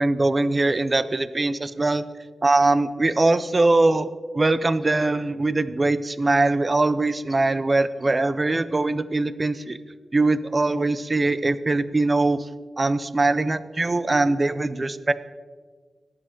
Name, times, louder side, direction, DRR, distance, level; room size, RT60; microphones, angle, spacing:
voice 1, 0.0-2.0 2.4-9.8 10.1-12.4 12.8-15.1, right 2 dB, 25° right, 14 dB, 0.4 m, -22 dB
19.0 x 7.5 x 3.8 m, 1.5 s
wide cardioid pair, 130°, 0 cm